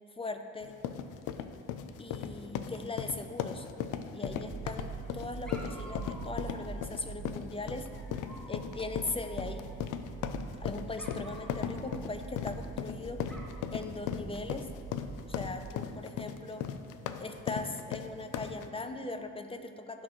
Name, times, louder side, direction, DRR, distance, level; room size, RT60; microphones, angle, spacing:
voice 1, 0.2-0.8 2.0-3.7 4.1-7.9 8.5-9.6 10.6-13.2 13.7-14.7 15.3-16.7 17.2-20.0, left 2 dB, 20° left, 7 dB, 0.6 m, -39 dB
sound 1, 0.6-18.7, left 8 dB, 85° left, 0.5 m, -37 dB
Dog, 3.9-4.8 5.5-7.1 7.9-10.0 11.0-12.9 13.3-13.7, equal, 5° left, 1.4 m, -52 dB
sound 2, 4.2-15.7, right 5 dB, 25° right, 0.3 m, -45 dB
15.0 x 6.2 x 3.1 m, 2.3 s
cardioid pair, 90°, 30 cm